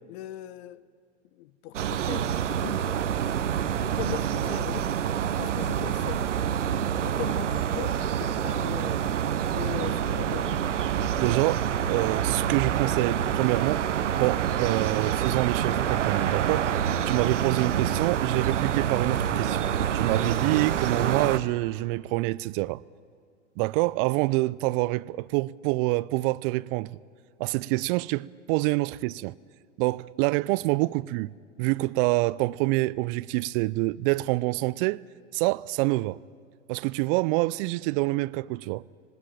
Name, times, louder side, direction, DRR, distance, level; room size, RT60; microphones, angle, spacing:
voice 1, 0.1-0.8 1.3-3.1 3.8-4.9 5.4-6.3 7.0-9.1 9.5-10.7, left 13 dB, 60° left, 0.9 m, -39 dB
sound 1, 1.7-21.4, right 9 dB, 85° right, 0.9 m, -27 dB
voice 2, 11.2-13.8 14.2-16.7 17.1-19.7 19.9-22.8 23.6-27.0 27.4-29.3 29.8-31.3 31.6-35.0 35.3-36.2 36.7-38.8, right 21 dB, 50° right, 0.5 m, -26 dB
20.5 x 18.5 x 8.9 m
hypercardioid pair, 95°, 36 cm